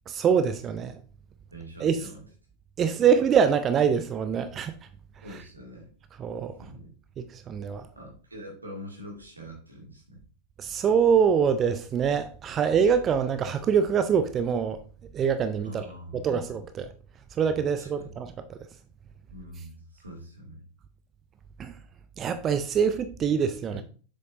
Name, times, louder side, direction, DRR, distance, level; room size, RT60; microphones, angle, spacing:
voice 1, 0.1-1.0 1.8-2.0 2.8-4.7 6.2-6.5 7.2-7.9 10.6-14.8 15.1-15.9 16.1-16.9 17.3-18.6 21.6-21.7 22.2-23.8, right 7 dB, 25° right, 0.5 m, -24 dB
voice 2, 1.5-2.2 2.8-2.9 5.2-5.9 6.6-6.9 7.9-10.2 15.6-16.4 17.8-18.1 19.3-20.6 23.7-23.8, equal, 80° right, 2.2 m, -44 dB
7.5 x 6.4 x 2.6 m
figure-of-eight pair, 90°, 0 cm